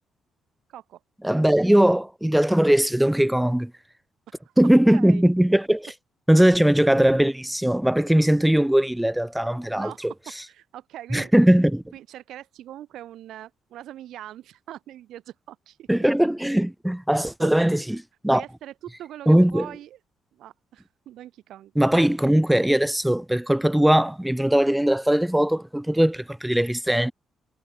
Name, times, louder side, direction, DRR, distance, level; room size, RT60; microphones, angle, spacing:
voice 1, 0.7-1.0 4.3-4.5 4.9-5.2 9.7-11.3 11.9-15.9 17.1-17.7 18.3-20.0 20.4-21.7, right 12 dB, 80° right, 5.5 m, -42 dB
voice 2, 1.2-3.7 4.6-5.9 6.3-10.1 11.1-11.8 15.9-18.4 19.3-19.7 21.8-27.1, right 1 dB, 5° right, 0.5 m, -20 dB
cardioid pair, 90°, 0 cm